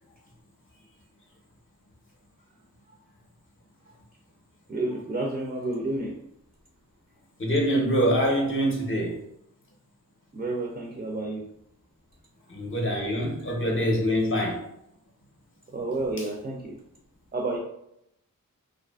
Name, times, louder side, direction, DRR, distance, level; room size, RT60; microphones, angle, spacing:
voice 1, 4.7-6.2 10.3-11.4 15.7-16.8 17.3-17.6, right 2 dB, 25° right, 0.4 m, -30 dB
voice 2, 7.4-9.2 12.5-14.6, equal, 40° left, 0.6 m, -25 dB
2.5 x 2.4 x 2.3 m
wide cardioid pair, 85°, 34 cm